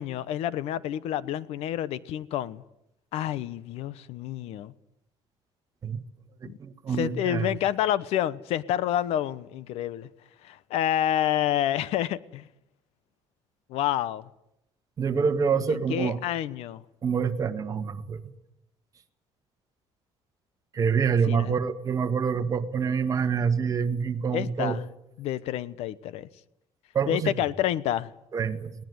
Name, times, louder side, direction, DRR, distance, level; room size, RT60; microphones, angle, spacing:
voice 1, 0.0-2.6 3.1-4.7 6.4-6.6 6.9-10.1 10.4-12.5 13.7-14.3 15.7-16.8 21.3-21.5 24.3-24.8 25.2-26.3 27.1-28.1, left 11 dB, 75° left, 1.0 m, -28 dB
voice 2, 6.6-7.5 15.0-16.2 17.0-18.2 20.7-24.8 26.9-27.3 28.3-28.7, right 6 dB, 35° right, 1.7 m, -26 dB
21.5 x 18.5 x 9.5 m
cardioid pair, 135°, 11 cm